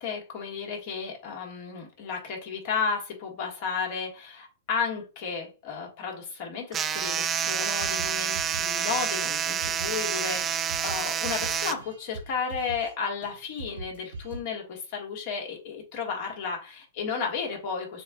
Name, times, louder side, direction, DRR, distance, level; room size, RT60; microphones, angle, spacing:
voice 1, 0.0-18.0, left 5 dB, 50° left, 1 dB, 1.8 m, -33 dB
sound 1, 6.7-11.7, right 8 dB, 25° right, 0.5 m, -28 dB
sound 2, 7.0-7.2 7.4-7.5 7.8-10.0 10.3-12.9 13.2-13.3 13.6-14.4, right 2 dB, 80° right, 1.4 m, -42 dB
6.9 x 2.4 x 2.5 m, 0.32 s
hypercardioid pair, 115°, 0 cm